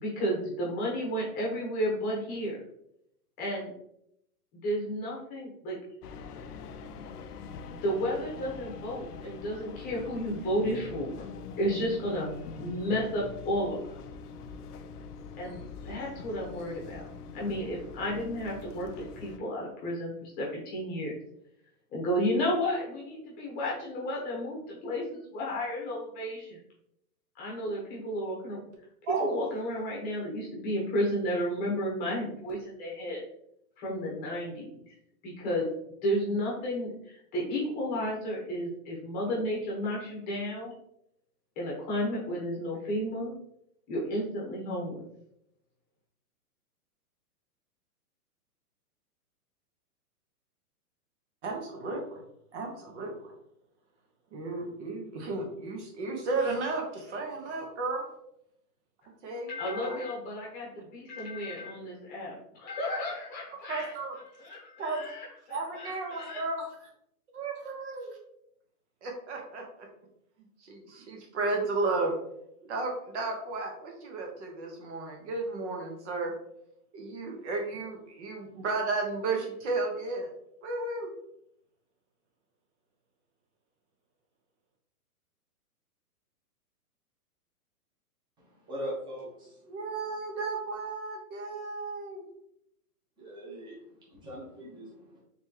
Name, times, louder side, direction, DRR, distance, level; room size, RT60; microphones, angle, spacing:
voice 1, 0.0-2.6 3.4-3.7 4.6-5.8 7.8-11.2 11.6-12.3 12.6-13.8 15.4-17.0 17.3-21.1 21.9-26.6 27.3-28.6 29.2-33.2 33.8-34.9 35.2-35.7 36.0-40.7 41.6-43.3 43.9-45.0 59.5-63.9 64.4-66.4, equal, 20° left, -3 dB, 1.0 m, -32 dB
sound 1, 6.0-19.4, left 5 dB, 80° left, 0.6 m, -43 dB
voice 2, 51.4-52.2 52.5-53.3 54.3-58.0 59.2-60.0 63.7-64.2 64.8-65.1 65.5-66.9 67.3-68.2 69.0-69.9 70.6-72.1 72.6-76.3 76.9-80.3 80.6-81.1 89.7-92.2, right 3 dB, 45° right, 1 dB, 1.2 m, -33 dB
voice 3, 88.4-89.6 93.2-95.2, equal, 10° right, -5 dB, 1.0 m, -41 dB
4.2 x 3.5 x 2.9 m, 0.76 s
hypercardioid pair, 155°, 46 cm